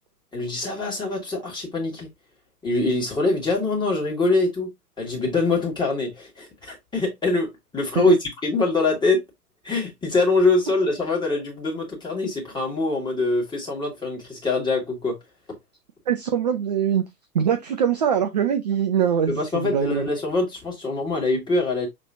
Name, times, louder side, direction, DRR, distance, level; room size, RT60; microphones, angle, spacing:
voice 1, 0.3-2.1 2.6-4.7 5.0-9.2 9.6-15.2 19.3-21.9, left 3 dB, 10° left, 1.8 m, -24 dB
voice 2, 16.1-17.0 17.3-20.1, right 8 dB, 30° right, 0.4 m, -22 dB
6.3 x 3.1 x 2.6 m
figure-of-eight pair, 110°, 46 cm